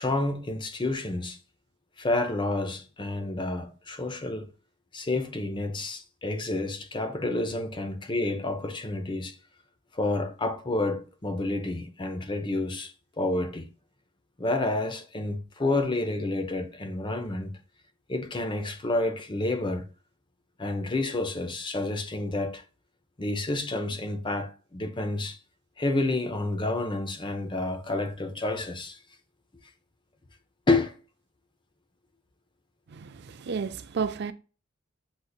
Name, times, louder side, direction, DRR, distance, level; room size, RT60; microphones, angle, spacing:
voice 1, 0.0-1.4 2.0-4.5 4.9-9.4 9.9-13.7 14.4-17.6 18.1-19.9 20.6-22.6 23.2-25.4 25.8-29.0 30.7-30.9, left 2 dB, 25° left, 0.6 m, -29 dB
voice 2, 32.9-34.3, right 5 dB, 55° right, 0.4 m, -32 dB
7.8 x 2.7 x 2.3 m
head